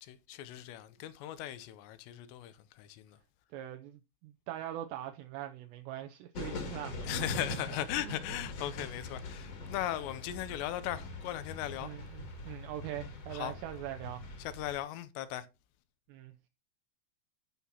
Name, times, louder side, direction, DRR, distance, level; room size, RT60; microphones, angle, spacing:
voice 1, 0.0-3.2 7.1-11.9 13.3-13.5 14.4-15.5, left 13 dB, 80° left, 2.7 m, -38 dB
voice 2, 3.5-7.2 8.0-8.2 11.8-14.2 16.1-16.3, right 12 dB, 80° right, 2.7 m, -42 dB
sound 1, 6.3-14.8, left 2 dB, 45° left, 2.3 m, -42 dB
15.0 x 5.6 x 2.8 m
omnidirectional pair, 5.3 m